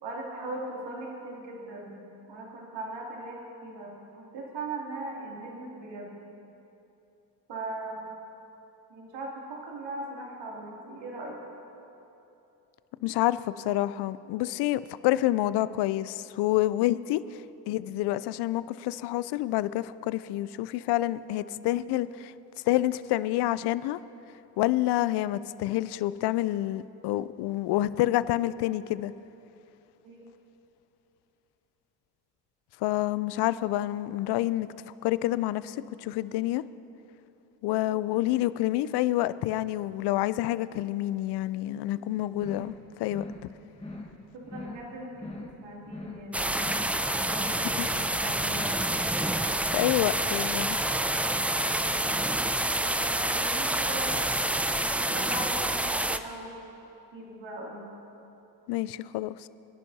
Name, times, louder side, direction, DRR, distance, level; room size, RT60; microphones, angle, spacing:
voice 1, 0.0-2.0 2.3-6.1 7.5-8.2 8.9-11.4 30.0-30.3 44.3-46.7 47.1-48.7 51.6-52.2 52.6-54.2 54.9-56.6 57.1-57.9, right 2 dB, 60° right, -2 dB, 2.8 m, -39 dB
voice 2, 13.0-17.4 17.7-22.3 22.7-24.0 24.6-29.1 32.8-34.7 35.0-36.6 37.6-42.7 43.0-43.2 47.8-47.9 49.7-50.8 58.7-59.5, left 15 dB, 55° left, 17 dB, 0.5 m, -28 dB
sound 1, 42.3-42.8 43.0-43.5 43.7-44.2 44.4-44.9 45.1-45.6 45.8-46.3 46.5-47.0 47.2-47.7, left 2 dB, 10° left, 1.5 m, -41 dB
sound 2, 46.3-56.2, right 1 dB, 5° right, 0.3 m, -28 dB
26.0 x 11.0 x 2.8 m, 2.9 s
hypercardioid pair, 50°, 48 cm